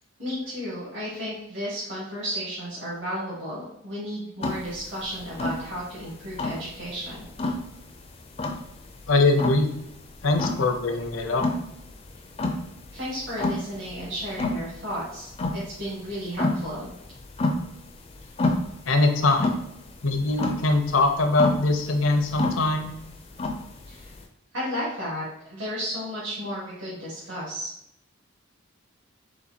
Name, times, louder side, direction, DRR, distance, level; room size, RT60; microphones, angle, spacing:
voice 1, 0.2-7.3 12.9-16.9 23.9-24.1 24.5-27.7, equal, 60° right, -7 dB, 1.5 m, -33 dB
sound 1, 4.4-24.2, left 2 dB, 30° left, 0.4 m, -30 dB
voice 2, 9.1-9.7 10.2-11.4 18.8-19.6 20.0-22.9, left 2 dB, 70° left, 5 dB, 0.6 m, -22 dB
4.0 x 2.6 x 4.2 m, 0.79 s
head